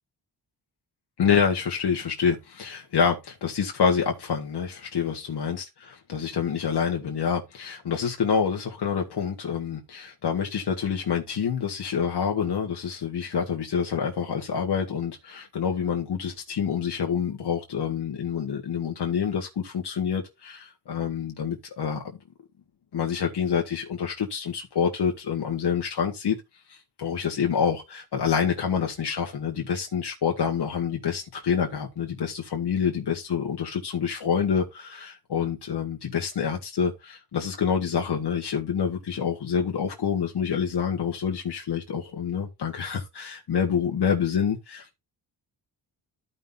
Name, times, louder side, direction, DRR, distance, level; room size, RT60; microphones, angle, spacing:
voice 1, 1.2-22.0 22.9-26.4 26.7-45.0, left 7 dB, 65° left, 1.6 m, -27 dB
14.0 x 5.6 x 2.7 m
cardioid pair, 90°, 43 cm